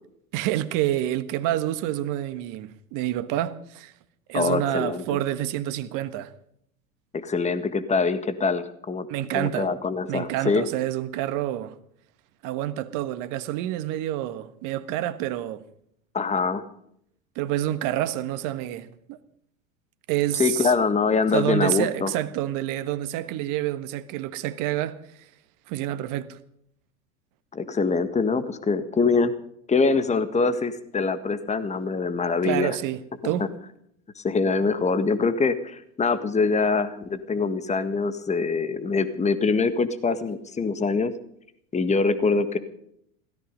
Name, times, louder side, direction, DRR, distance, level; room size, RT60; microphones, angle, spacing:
voice 1, 0.3-3.9 4.3-6.3 9.1-9.7 10.1-11.7 12.4-15.6 17.3-19.2 20.1-20.7 21.3-25.0 25.7-26.4 32.4-33.5, right 13 dB, 50° right, 1.5 m, -28 dB
voice 2, 4.3-5.2 7.1-9.1 9.3-10.6 16.1-16.6 20.3-22.1 27.5-29.3 29.7-32.8 33.2-33.5 34.1-41.1 41.7-42.6, left 4 dB, 15° left, 1.7 m, -24 dB
17.0 x 14.5 x 5.3 m
hypercardioid pair, 85°, 41 cm